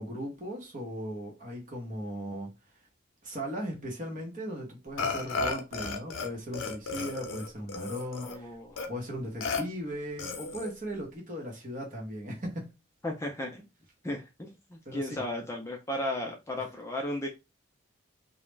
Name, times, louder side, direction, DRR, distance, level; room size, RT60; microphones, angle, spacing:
voice 1, 0.0-2.5 3.2-8.5 8.9-12.7 14.9-15.2, equal, 40° right, 0.9 m, -37 dB
Burping eructation, 5.0-6.3 6.5-8.4 8.8-8.9 9.4-9.6 10.2-10.7, left 4 dB, 80° left, 0.6 m, -34 dB
voice 2, 8.2-8.9 13.0-13.7 14.0-17.3, left 1 dB, 15° left, 0.3 m, -35 dB
2.4 x 2.1 x 3.1 m
head